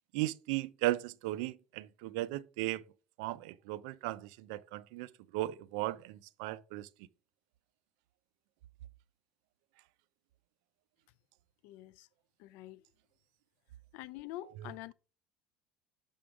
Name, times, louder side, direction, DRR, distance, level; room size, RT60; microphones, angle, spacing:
voice 1, 0.1-2.8 3.2-6.9 14.6-14.9, right 16 dB, 80° right, 0.4 m, -36 dB
voice 2, 11.6-12.1 12.4-12.8 13.9-14.9, left 15 dB, 70° left, 0.4 m, -46 dB
6.9 x 3.7 x 4.8 m
supercardioid pair, 125°, 3 cm